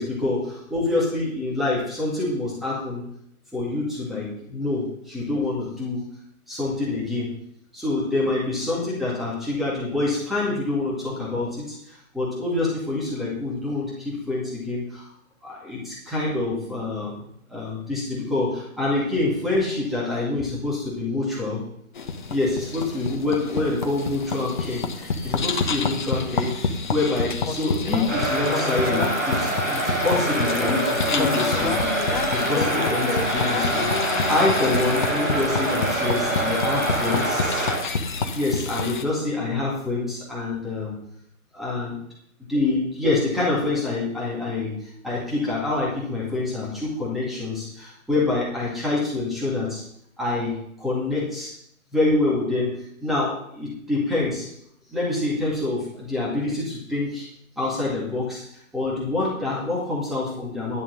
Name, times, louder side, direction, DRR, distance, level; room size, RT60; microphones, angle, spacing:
voice 1, 0.0-3.0 3.5-6.0 6.5-7.3 7.7-15.1 15.4-17.1 17.5-21.6 22.3-31.7 32.3-37.7 38.3-40.9 41.5-42.0 42.5-49.8 50.2-51.5 51.9-52.7 53.0-54.5 54.9-57.3 57.6-58.4 58.7-60.8, left 2 dB, ahead, -6 dB, 2.1 m, -26 dB
sound 1, 21.9-39.0, left 4 dB, 35° left, 1.1 m, -28 dB
sound 2, 28.1-37.8, right 1 dB, 15° right, 3.6 m, -25 dB
11.0 x 7.0 x 6.3 m, 0.71 s
figure-of-eight pair, 145°, 43 cm